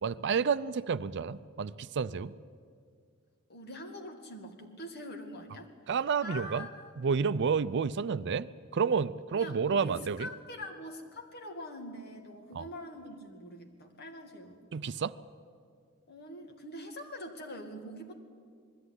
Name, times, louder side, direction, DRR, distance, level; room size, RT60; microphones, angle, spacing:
voice 1, 0.0-2.3 5.9-6.7 7.0-8.5 8.7-10.3 12.5-12.6 14.7-15.1, right 6 dB, 55° right, 15 dB, 0.5 m, -30 dB
voice 2, 3.5-5.7 6.2-7.0 9.3-14.6 16.1-18.1, left 1 dB, 50° left, 3 dB, 2.3 m, -44 dB
21.0 x 14.0 x 9.7 m, 2.1 s
head